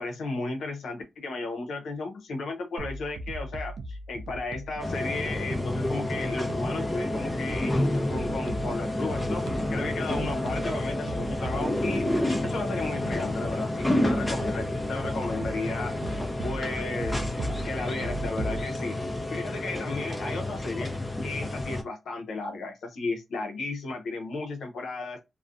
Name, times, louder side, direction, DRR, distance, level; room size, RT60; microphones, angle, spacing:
voice 1, 0.0-12.0 12.4-19.0 19.3-20.9 21.2-25.2, left 3 dB, 85° left, 0.7 m, -34 dB
sound 1, 2.8-18.6, right 2 dB, 85° right, 0.3 m, -39 dB
sound 2, 4.8-21.8, left 1 dB, 15° left, 0.6 m, -30 dB
2.4 x 2.1 x 2.4 m
cardioid pair, 80°, 0 cm